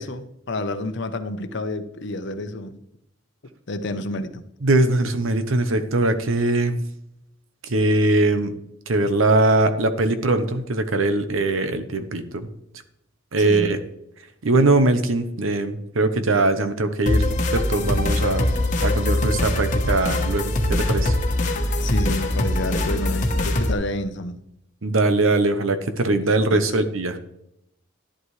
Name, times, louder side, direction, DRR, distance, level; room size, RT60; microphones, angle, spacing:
voice 1, 0.0-2.8 3.4-4.4 13.4-13.7 21.8-24.4 26.5-26.7, left 2 dB, 60° left, 10 dB, 0.8 m, -29 dB
voice 2, 4.6-6.8 7.7-8.5 8.9-12.5 13.3-13.8 14.4-17.3 17.5-21.1 24.8-27.2, right 2 dB, 90° right, 10 dB, 0.9 m, -21 dB
sound 1, 17.1-23.7, left 1 dB, 40° left, 1.1 m, -22 dB
11.5 x 11.0 x 3.2 m, 0.82 s
head